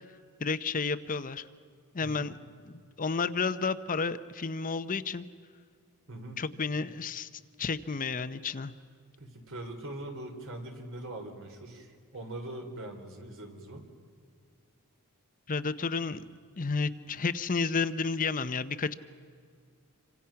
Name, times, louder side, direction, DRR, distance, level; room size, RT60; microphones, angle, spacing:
voice 1, 0.4-1.5 1.9-2.3 2.7-5.3 6.4-7.3 7.6-8.7 15.5-16.3 16.6-18.9, left 4 dB, 40° left, 12 dB, 0.7 m, -31 dB
voice 2, 2.0-2.3 6.1-6.4 9.2-13.9, right 1 dB, 60° right, 4 dB, 3.4 m, -42 dB
27.5 x 25.0 x 5.8 m, 2.1 s
head